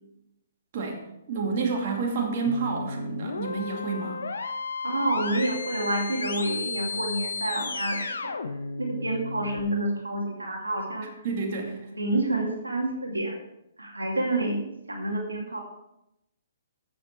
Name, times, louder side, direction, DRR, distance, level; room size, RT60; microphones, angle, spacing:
voice 1, 1.3-4.2 11.2-11.8, right 4 dB, 45° right, 0 dB, 2.4 m, -29 dB
sound 1, 2.5-9.6, left 4 dB, 75° left, 1.0 m, -34 dB
voice 2, 4.8-8.3 8.8-11.1 11.9-13.3 13.8-15.6, right 1 dB, 85° right, 1 dB, 2.2 m, -28 dB
12.5 x 7.8 x 4.7 m, 0.85 s
figure-of-eight pair, 125°, 0 cm